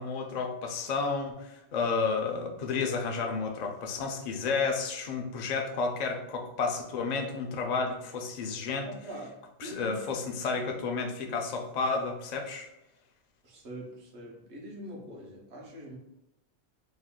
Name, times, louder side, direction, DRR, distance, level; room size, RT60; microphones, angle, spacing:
voice 1, 0.0-8.9 9.6-12.7, left 4 dB, 55° left, 3 dB, 0.5 m, -31 dB
voice 2, 8.8-10.0 13.4-16.0, right 1 dB, 80° right, -2 dB, 1.2 m, -43 dB
3.1 x 2.2 x 3.6 m, 0.88 s
omnidirectional pair, 1.1 m